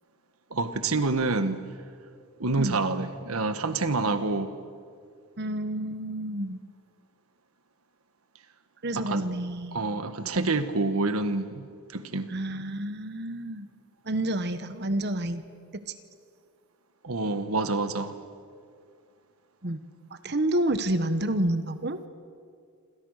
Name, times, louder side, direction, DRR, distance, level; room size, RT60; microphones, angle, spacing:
voice 1, 0.5-1.7 2.4-4.5 9.0-9.3 9.7-12.3 17.0-18.2, right 3 dB, 80° right, 1.5 m, -27 dB
voice 2, 5.4-6.6 8.8-9.8 10.3-10.5 12.3-13.7 14.0-15.4 15.7-16.0 19.6-19.8 20.1-22.0, right 1 dB, 50° right, 1.2 m, -29 dB
27.5 x 27.0 x 6.6 m
head